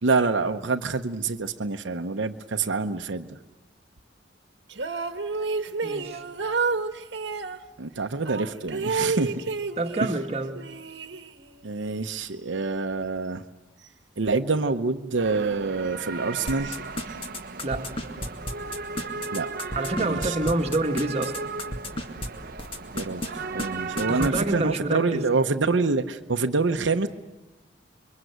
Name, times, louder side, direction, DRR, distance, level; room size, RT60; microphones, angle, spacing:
voice 1, 0.0-3.4 7.8-9.4 10.0-10.1 11.6-13.4 14.2-16.8 19.3-19.5 20.0-20.4 22.9-27.1, right 3 dB, 85° right, 0.9 m, -26 dB
sound 1, 4.7-7.6 8.3-10.2 10.6-11.6, right 4 dB, 70° right, 1.3 m, -30 dB
voice 2, 5.8-6.2 9.8-10.6 17.6-17.9 19.7-21.4 24.1-25.2, right 2 dB, 35° right, 1.5 m, -27 dB
sound 2, 15.2-24.3, right 4 dB, 50° right, 0.9 m, -36 dB
sound 3, 16.5-22.3 22.6-23.3 23.6-23.7 24.0-24.4, left 1 dB, 30° left, 2.1 m, -32 dB
27.5 x 23.0 x 8.0 m
head